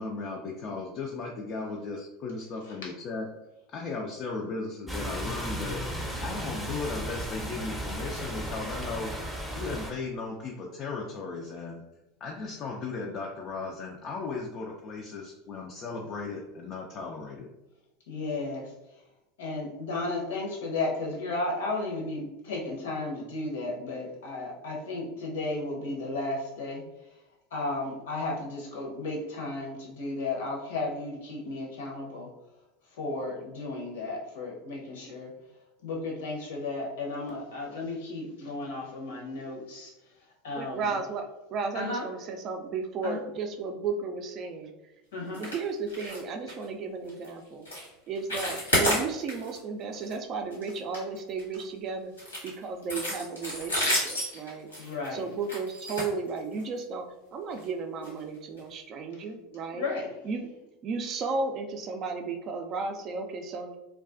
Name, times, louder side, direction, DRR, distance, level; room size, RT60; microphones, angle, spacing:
voice 1, 0.0-3.3 3.7-9.1 9.5-11.8 12.2-17.5, left 3 dB, 45° left, -1 dB, 0.3 m, -36 dB
voice 2, 2.6-2.9 18.1-18.7 19.4-26.8 27.5-32.3 33.0-35.3 35.8-39.9 40.4-41.0 41.7-42.1 43.0-43.2 45.1-45.4 54.8-55.3 59.7-60.1, left 2 dB, 70° left, -1 dB, 0.7 m, -34 dB
sound 1, 4.9-9.9, equal, ahead, 0.6 m, -35 dB
voice 3, 40.5-44.7 45.2-47.7 48.1-52.1 52.4-54.7 55.1-59.9 60.2-60.5 60.8-63.8, right 4 dB, 45° right, 4 dB, 0.4 m, -34 dB
sound 2, 45.3-45.6 45.9-46.2 46.5-46.6 47.1-47.3 47.6-47.9 48.1-49.6 49.9-50.1 50.5-51.6 52.2-56.8 57.5-57.7 58.0-58.1 58.6-58.7, equal, 90° left, 1.1 m, -31 dB
2.3 x 2.2 x 2.4 m, 0.93 s
figure-of-eight pair, 80°, 0 cm